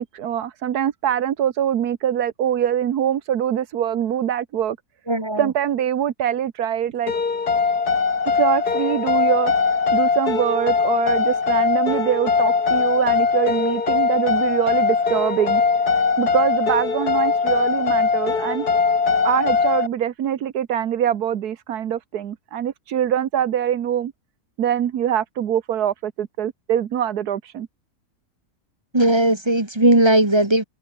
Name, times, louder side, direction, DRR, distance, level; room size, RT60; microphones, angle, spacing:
voice 1, 0.0-4.8 5.4-7.1 8.3-9.5 9.9-15.6 16.2-18.7 19.2-24.1 24.6-27.7, right 10 dB, 90° right, 1.6 m, -23 dB
voice 2, 5.1-5.5 28.9-30.6, right 1 dB, 15° right, 1.9 m, -17 dB
sound 1, 7.1-19.9, left 5 dB, 90° left, 3.1 m, -21 dB
omnidirectional pair, 1.6 m